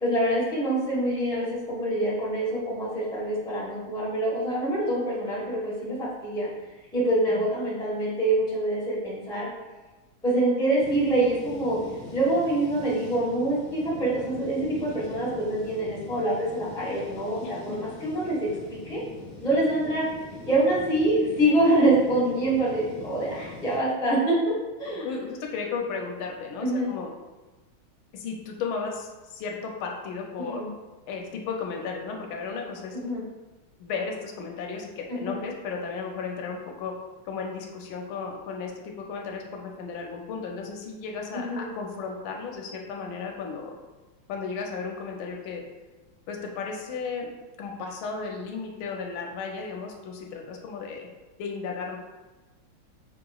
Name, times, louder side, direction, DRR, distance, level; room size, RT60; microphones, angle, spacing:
voice 1, 0.0-6.5 6.9-9.5 10.2-11.8 12.1-18.5 18.9-19.0 19.4-20.1 20.4-24.3 24.8-25.1 26.6-26.9 30.5-30.7 33.0-33.2 35.1-35.4 41.3-41.6, right 1 dB, 5° left, -7 dB, 0.3 m, -25 dB
sound 1, 10.8-23.8, left 2 dB, 30° left, 1.5 m, -42 dB
voice 2, 17.4-17.8 25.0-27.1 28.1-30.6 31.1-33.0 33.8-36.9 37.2-43.7 44.3-45.6 46.3-47.3 47.6-51.1 51.4-52.0, left 5 dB, 80° left, 1 dB, 1.4 m, -34 dB
5.3 x 2.9 x 2.3 m, 1.2 s
omnidirectional pair, 2.3 m